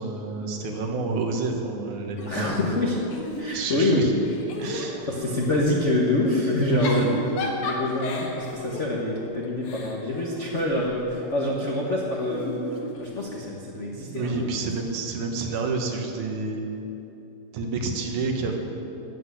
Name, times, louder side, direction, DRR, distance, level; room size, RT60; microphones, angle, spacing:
voice 1, 0.0-2.7 3.5-4.1 4.6-5.1 6.7-7.2 13.9-16.6 17.5-18.6, right 3 dB, 90° right, 3 dB, 2.7 m, -29 dB
Giggle / Chuckle chortle, 2.2-3.8 4.2-5.6 6.6-11.1 12.1-13.5, left 2 dB, 90° left, 2.8 m, -35 dB
voice 2, 2.3-3.0 3.4-4.0 5.0-7.2 7.6-12.6 13.0-14.7, left 1 dB, 65° left, -2 dB, 0.7 m, -26 dB
12.5 x 8.0 x 8.3 m, 3.0 s
omnidirectional pair, 3.3 m